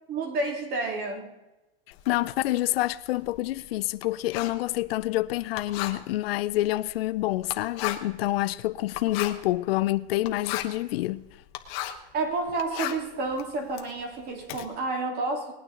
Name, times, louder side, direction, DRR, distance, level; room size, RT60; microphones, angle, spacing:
voice 1, 0.1-1.3 12.1-15.5, right 3 dB, 30° right, 2.6 m, -30 dB
Writing, 1.9-12.1 12.5-14.6, left 13 dB, 45° left, 1.2 m, -37 dB
voice 2, 2.1-11.3, left 16 dB, 80° left, 0.6 m, -27 dB
20.0 x 9.3 x 3.8 m
supercardioid pair, 155°, 30 cm